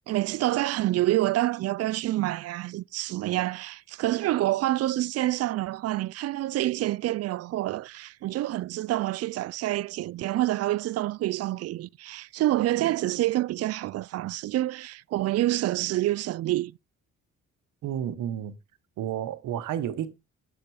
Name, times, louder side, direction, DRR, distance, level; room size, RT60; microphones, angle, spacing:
voice 1, 0.1-16.7, right 15 dB, 55° right, 0.4 m, -27 dB
voice 2, 17.8-18.6 19.0-20.1, right 10 dB, 85° right, 1.2 m, -31 dB
7.9 x 6.9 x 4.7 m
cardioid pair, 90°, 30 cm